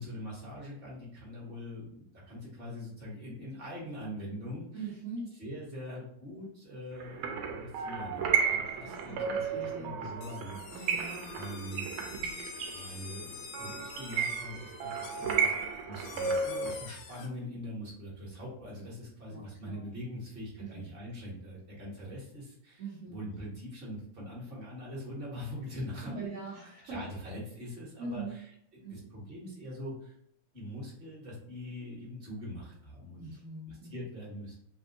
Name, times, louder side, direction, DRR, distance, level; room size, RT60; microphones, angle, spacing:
voice 1, 0.0-4.9 5.4-11.9 12.7-15.4 15.9-22.8 23.1-26.3 26.8-30.1 30.5-33.3 33.7-34.6, left 1 dB, 30° right, -5 dB, 1.2 m, -43 dB
voice 2, 4.7-5.4 8.6-9.9 10.7-11.4 12.0-12.4 19.3-19.8 20.6-20.8 22.8-23.2 26.0-27.0 28.0-28.4 28.8-29.0 33.1-33.9, right 3 dB, 60° right, -7 dB, 0.8 m, -42 dB
sound 1, 7.0-16.7, right 6 dB, 80° right, 1.4 m, -33 dB
sound 2, 10.2-17.3, left 6 dB, 80° left, 1.3 m, -47 dB
3.4 x 2.5 x 2.7 m, 0.70 s
omnidirectional pair, 2.4 m